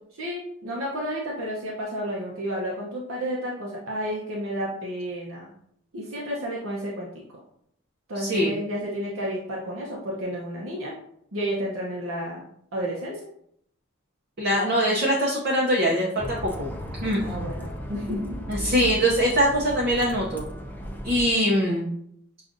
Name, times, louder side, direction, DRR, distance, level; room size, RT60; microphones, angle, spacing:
voice 1, 0.1-5.5 5.9-7.2 8.1-10.9 11.3-12.4 12.7-13.2 17.2-18.7, equal, 90° right, -3 dB, 0.8 m, -31 dB
voice 2, 8.2-8.5 14.4-16.7 17.0-17.5 18.5-20.5 21.0-21.9, equal, 50° right, -3 dB, 0.6 m, -23 dB
Bus, 16.2-21.3, equal, 10° left, 0.3 m, -36 dB
6.4 x 2.4 x 2.6 m, 0.71 s
head